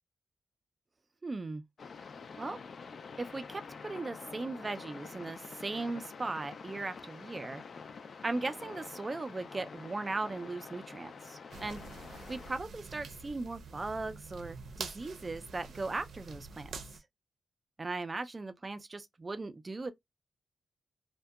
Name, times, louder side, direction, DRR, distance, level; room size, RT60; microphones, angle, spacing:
voice 1, 1.2-1.6 2.4-2.6 3.2-7.6 8.2-11.8 12.3-16.7 17.8-19.9, right 3 dB, 25° right, 0.3 m, -38 dB
sound 1, 1.8-12.5, left 5 dB, 55° left, 0.4 m, -47 dB
sound 2, 11.5-17.0, right 5 dB, 85° right, 0.5 m, -46 dB
2.7 x 2.1 x 2.2 m
wide cardioid pair, 140°, 0 cm